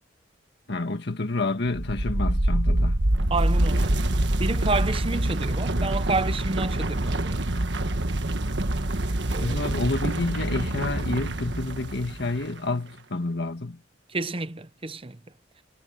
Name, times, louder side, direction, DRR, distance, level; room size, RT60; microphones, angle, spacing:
voice 1, 0.7-3.0 9.4-13.8, left 2 dB, 65° left, 1.7 m, -29 dB
sound 1, 1.7-12.5, right 1 dB, 65° right, 1.5 m, -25 dB
voice 2, 3.3-3.9 4.4-7.4 9.3-9.6 14.1-15.2, right 3 dB, 30° right, 0.9 m, -29 dB
head